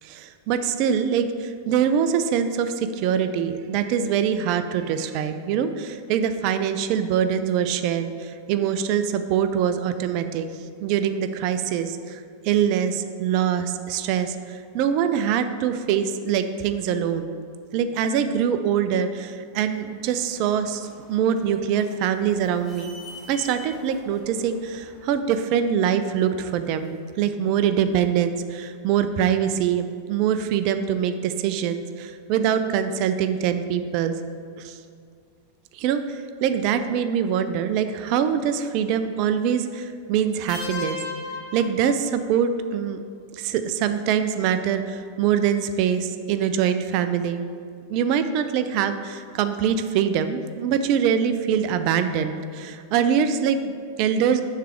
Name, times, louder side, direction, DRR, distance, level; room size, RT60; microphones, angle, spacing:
voice 1, 0.0-10.5 10.8-17.4 17.7-23.0 23.3-34.1 34.6-34.8 35.7-41.0 41.5-43.0 43.3-47.4 47.9-54.4, right 8 dB, 45° right, 10 dB, 0.4 m, -24 dB
sound 1, 19.6-27.0, left 2 dB, 10° right, 1.3 m, -48 dB
sound 2, 40.5-42.4, left 3 dB, 40° left, 1.2 m, -34 dB
6.6 x 3.2 x 4.9 m, 2.3 s
figure-of-eight pair, 90°, 0 cm